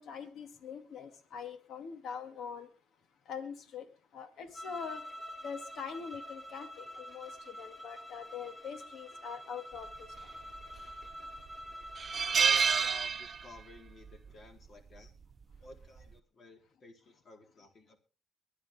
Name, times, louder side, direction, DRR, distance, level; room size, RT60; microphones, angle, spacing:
voice 1, 0.0-2.7 3.3-3.9 4.1-5.0 5.4-10.1, left 7 dB, 70° left, 2.3 m, -43 dB
sound 1, 4.5-13.0, equal, 5° left, 7.5 m, -47 dB
sound 2, 10.5-11.1 11.5-11.6 12.0-13.8 14.0-14.3 15.5-15.8, right 6 dB, 40° right, 0.6 m, -29 dB
voice 2, 12.3-15.1 15.6-18.0, left 2 dB, 50° left, 4.3 m, -52 dB
22.5 x 10.5 x 3.6 m
cardioid pair, 90°, 0 cm